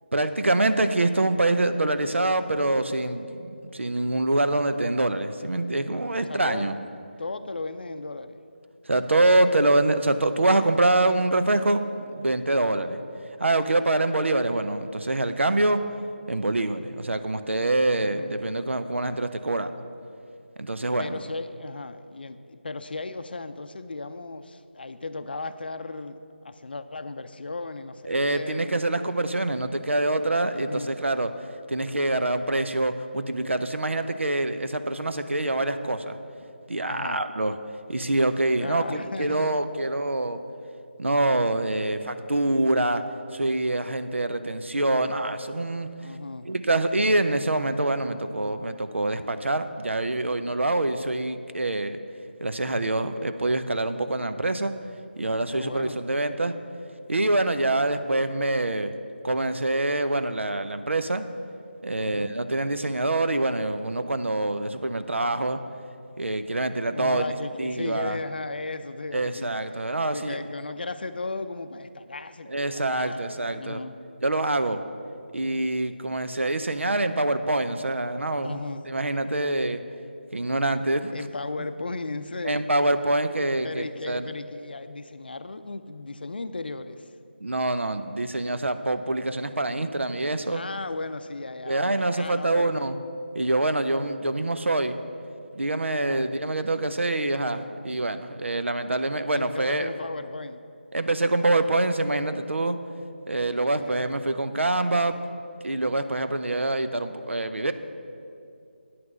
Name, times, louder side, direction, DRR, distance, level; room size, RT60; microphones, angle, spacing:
voice 1, 0.1-3.3 3.7-6.7 8.9-11.8 12.1-13.0 13.4-15.8 16.3-19.7 20.6-21.2 28.1-31.3 31.7-36.2 36.7-37.5 37.9-40.4 41.0-43.0 43.3-45.9 46.5-52.0 52.4-54.7 55.2-56.5 57.1-58.9 59.2-61.3 61.8-65.6 66.2-67.3 67.6-68.2 69.1-70.3 72.5-73.8 74.2-74.8 75.3-78.6 78.8-79.8 80.3-81.1 82.4-84.2 87.4-90.6 91.7-92.9 93.3-94.9 95.6-99.9 100.9-102.8 103.3-105.2 105.6-107.7, right 2 dB, 85° right, 10 dB, 0.7 m, -25 dB
voice 2, 6.1-6.7 7.2-8.4 18.0-18.4 21.0-26.2 26.4-28.7 30.5-31.0 36.8-37.2 38.6-39.6 46.0-46.5 55.2-56.0 62.0-62.3 66.9-74.0 78.4-78.9 81.1-82.7 83.6-87.1 90.5-92.9 95.9-96.3 99.3-100.6 103.8-104.1, left 3 dB, 55° left, 10 dB, 0.5 m, -36 dB
9.6 x 5.9 x 7.5 m, 2.5 s
figure-of-eight pair, 170°, 6 cm